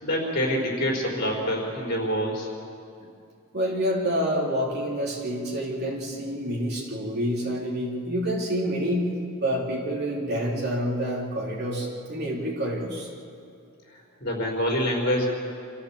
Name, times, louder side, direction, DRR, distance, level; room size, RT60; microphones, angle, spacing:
voice 1, 0.0-2.5 14.2-15.3, equal, 50° left, -2 dB, 4.8 m, -26 dB
voice 2, 3.5-9.1 9.4-13.1, equal, 50° right, -2 dB, 3.5 m, -28 dB
26.5 x 14.5 x 7.4 m, 2.4 s
head